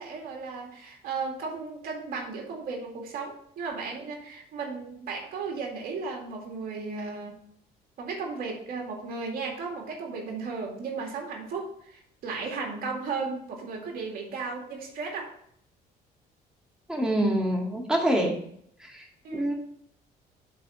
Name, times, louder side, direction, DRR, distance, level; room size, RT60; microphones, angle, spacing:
voice 1, 0.0-7.4 8.0-15.3 19.2-19.5, right 4 dB, 60° right, 1 dB, 2.2 m, -35 dB
voice 2, 16.9-18.4 18.8-19.6, right 1 dB, 5° right, 0 dB, 2.0 m, -26 dB
8.4 x 4.0 x 6.1 m, 0.67 s
cardioid pair, 110°, 17 cm